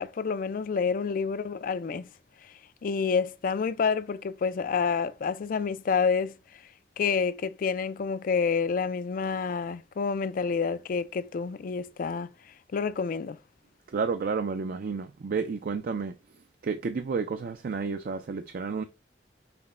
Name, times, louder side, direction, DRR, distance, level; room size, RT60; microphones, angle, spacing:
voice 1, 0.0-2.1 2.4-2.5 2.8-6.4 7.0-12.3 12.7-13.4, left 5 dB, 50° left, 0.4 m, -28 dB
voice 2, 13.9-16.2 16.6-18.8, right 5 dB, 55° right, 0.4 m, -31 dB
5.9 x 2.1 x 3.6 m
head